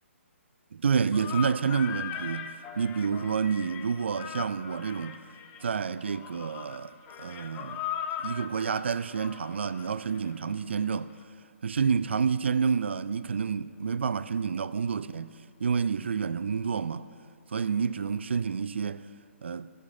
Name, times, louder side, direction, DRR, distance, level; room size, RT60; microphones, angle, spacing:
voice 1, 0.7-5.2 5.6-7.8 8.2-11.1 11.6-15.3 15.6-17.1 17.5-19.1 19.4-19.7, right 6 dB, 55° right, 0.4 m, -29 dB
sound 1, 1.1-10.6, left 9 dB, 20° left, 0.4 m, -39 dB
18.5 x 6.6 x 3.8 m
figure-of-eight pair, 130°, 7 cm